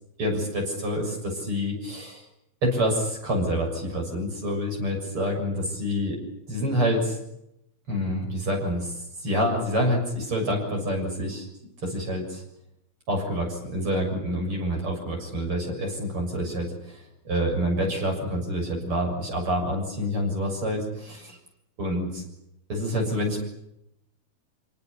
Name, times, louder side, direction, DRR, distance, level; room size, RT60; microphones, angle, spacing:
voice 1, 0.2-2.2 2.6-6.2 6.5-7.2 7.9-11.5 11.8-12.4 13.1-21.4 21.8-22.3 22.7-23.4, equal, 45° right, 1 dB, 7.8 m, -27 dB
27.5 x 18.5 x 10.0 m, 0.82 s
omnidirectional pair, 3.4 m